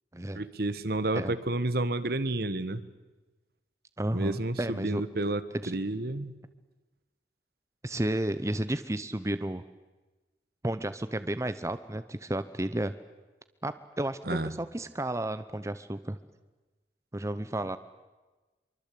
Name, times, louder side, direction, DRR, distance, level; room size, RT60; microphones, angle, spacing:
voice 1, 0.3-2.8 4.1-6.3 14.3-14.5, right 2 dB, 60° right, 13 dB, 1.4 m, -30 dB
voice 2, 4.0-5.0 5.6-5.7 7.8-9.6 10.6-12.9 13.6-16.2 17.1-17.8, right 1 dB, 15° right, 12 dB, 0.8 m, -32 dB
25.0 x 23.5 x 8.5 m, 1.2 s
head